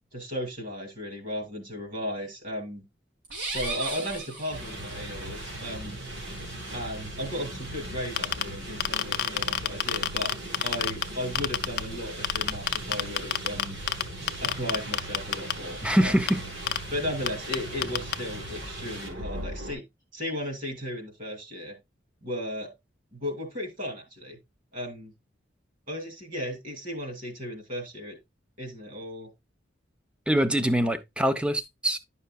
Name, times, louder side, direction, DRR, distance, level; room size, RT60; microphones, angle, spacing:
voice 1, 0.1-2.8 3.5-6.0 6.7-10.3 10.6-13.8 14.4-16.3 16.9-19.8 20.1-21.8 22.2-22.7 23.1-24.4 24.7-25.1 25.9-28.2 28.6-29.3 30.8-30.9, equal, 45° right, 2.4 m, -35 dB
sound 1, 3.2-5.2, right 2 dB, 90° right, 3.5 m, -36 dB
sound 2, 4.5-19.7, right 1 dB, 65° right, 3.0 m, -38 dB
sound 3, 8.0-8.4 8.8-11.0 11.4-11.8 12.2-14.0 14.3-15.5 16.3-16.4 16.7-16.8 17.3-17.4 17.5-17.6 17.8-18.1, left 10 dB, 55° left, 0.5 m, -24 dB
voice 2, 15.8-16.4 30.3-32.0, equal, 5° right, 0.5 m, -24 dB
10.5 x 5.6 x 2.3 m
head